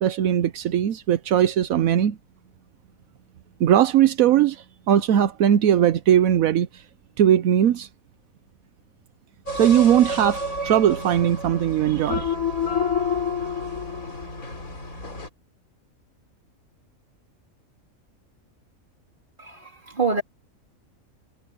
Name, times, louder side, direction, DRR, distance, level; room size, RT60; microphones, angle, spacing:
voice 1, 0.0-2.2 3.6-6.8 7.2-7.9 9.5-12.3, right 10 dB, 80° right, 1.2 m, -19 dB
sound 1, 9.5-15.3, left 4 dB, 85° left, 4.1 m, -29 dB
voice 2, 19.4-20.2, right 4 dB, 35° right, 3.1 m, -26 dB
omnidirectional pair, 1.4 m